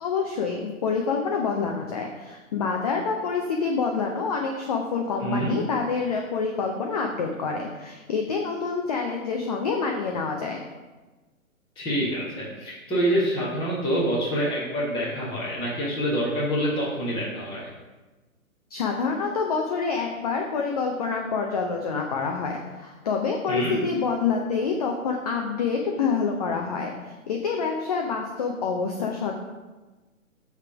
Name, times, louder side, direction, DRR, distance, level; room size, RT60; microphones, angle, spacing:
voice 1, 0.0-10.6 18.7-29.3, left 5 dB, 30° left, 2 dB, 0.5 m, -27 dB
voice 2, 5.2-5.5 11.7-17.7 23.5-23.7, equal, 10° left, -8 dB, 1.5 m, -26 dB
8.1 x 3.4 x 5.7 m, 1.2 s
hypercardioid pair, 140°, 42 cm